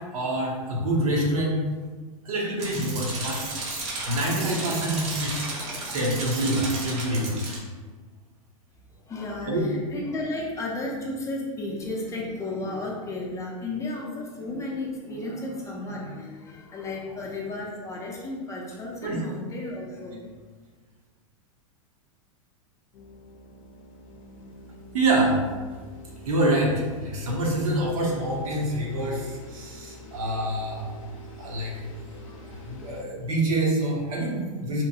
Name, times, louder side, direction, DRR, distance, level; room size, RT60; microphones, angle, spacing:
voice 1, 0.1-1.6 2.2-3.4 4.1-7.4 9.4-9.7 19.0-19.2 24.9-25.4 26.2-30.9 31.4-31.9 32.3-34.8, right 1 dB, 75° right, -2 dB, 0.9 m, -26 dB
sound 1, 2.6-7.6, right 2 dB, 40° right, 0.8 m, -33 dB
voice 2, 8.9-20.4, left 2 dB, 15° left, -2 dB, 0.5 m, -33 dB
sound 2, 22.9-33.0, left 2 dB, 70° left, 0.5 m, -46 dB
2.9 x 2.2 x 2.7 m, 1.4 s
hypercardioid pair, 120°, 18 cm